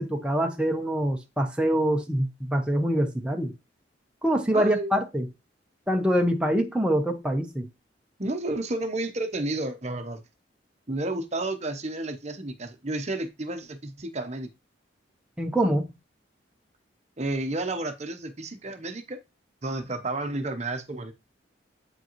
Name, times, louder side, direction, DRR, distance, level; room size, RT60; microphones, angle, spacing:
voice 1, 0.0-3.5 4.2-5.3 5.9-7.7 15.4-15.9, equal, 5° right, 0.7 m, -25 dB
voice 2, 4.5-5.0 8.2-10.2 10.9-14.5 17.2-19.2 19.6-21.1, right 2 dB, 35° right, 0.8 m, -31 dB
8.1 x 5.2 x 3.0 m
head